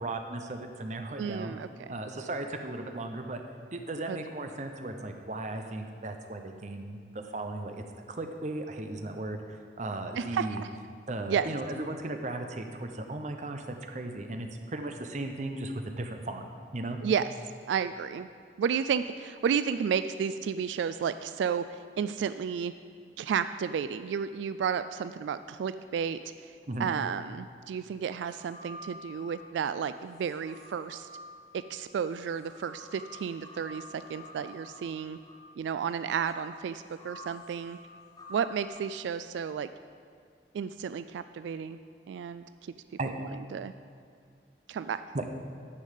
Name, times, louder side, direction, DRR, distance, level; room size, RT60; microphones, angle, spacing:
voice 1, 0.0-1.6 1.9-3.4 3.7-10.6 11.1-16.4 16.7-17.0 26.7-26.9 43.0-43.1 45.1-45.2, right 2 dB, 40° right, 5 dB, 0.8 m, -36 dB
voice 2, 1.2-1.9 4.1-4.2 10.2-10.7 11.3-11.5 17.0-17.3 17.7-18.3 18.6-22.7 23.2-26.2 26.8-31.1 31.5-35.2 35.6-37.8 38.3-39.7 40.5-41.8 42.1-42.4 43.2-43.7 44.7-45.0, right 7 dB, 90° right, 12 dB, 0.3 m, -32 dB
sound 1, 28.3-29.5 30.1-38.7, left 1 dB, 20° left, 0.9 m, -49 dB
9.9 x 5.4 x 8.3 m, 2.2 s
head